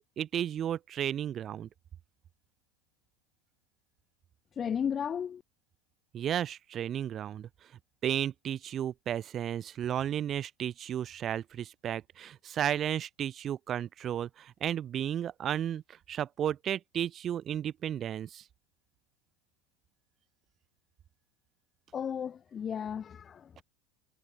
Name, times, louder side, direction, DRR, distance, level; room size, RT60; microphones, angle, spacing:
voice 1, 0.0-1.7 6.1-7.5 8.0-18.4 23.6-23.7, right 10 dB, 25° right, 1.8 m, -33 dB
voice 2, 4.5-5.4 21.9-23.6, left 8 dB, 20° left, 5.7 m, -34 dB
supercardioid pair, 170°, 0 cm